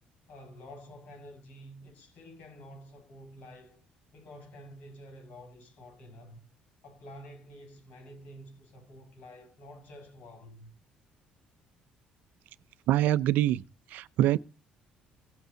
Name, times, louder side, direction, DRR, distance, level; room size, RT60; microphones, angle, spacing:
voice 1, 0.3-3.8 4.1-6.4 6.8-10.7, equal, 65° left, 6.3 m, -49 dB
voice 2, 12.9-13.6 13.9-14.4, right 13 dB, 80° right, 0.5 m, -24 dB
17.5 x 8.2 x 4.0 m
cardioid pair, 120°, 3 cm